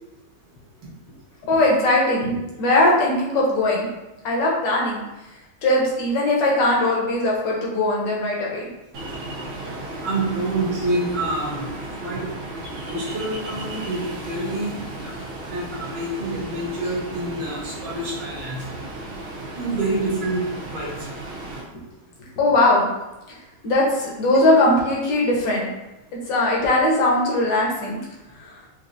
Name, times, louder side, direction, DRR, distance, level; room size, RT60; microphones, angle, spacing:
voice 1, 1.5-3.9 4.2-5.0 5.6-8.7 22.4-22.9 23.3-23.4 23.6-25.7 26.3-28.0 28.4-28.5, left 1 dB, 60° left, -3 dB, 1.6 m, -20 dB
Ocean, 8.9-21.6, right 1 dB, 80° right, 1.7 m, -34 dB
voice 2, 10.0-11.7 12.0-12.2 12.8-15.1 15.4-18.7 19.6-21.1 21.4-21.5, right 2 dB, 60° right, -5 dB, 1.7 m, -27 dB
5.1 x 2.6 x 2.6 m, 1.0 s
omnidirectional pair, 2.3 m